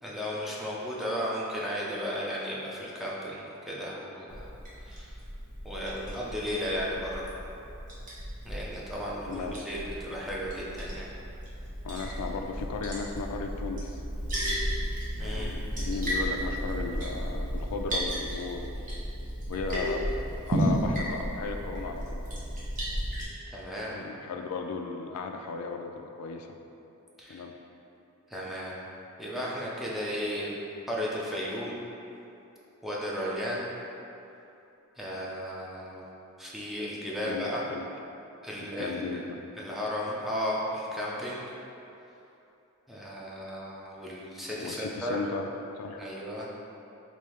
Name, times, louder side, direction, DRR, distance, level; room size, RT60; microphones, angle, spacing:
voice 1, 0.0-4.5 4.8-5.2 5.6-7.3 8.4-11.1 15.2-15.6 23.5-24.0 27.2-27.4 28.3-28.8 29.2-30.5 30.9-31.8 32.8-33.7 35.0-36.1 36.4-37.6 38.4-39.2 39.6-41.5 42.9-45.2 46.0-46.5, equal, ahead, -6 dB, 0.5 m, -34 dB
Liquid, 4.3-23.2, equal, 40° right, 0.9 m, -34 dB
voice 2, 11.8-14.0 15.2-18.8 19.5-22.2 23.9-26.5 27.3-27.5 37.2-38.1 38.8-39.7 44.6-45.5 45.7-46.0, left 4 dB, 85° left, 5 dB, 0.3 m, -36 dB
3.4 x 2.6 x 4.3 m, 2.9 s
head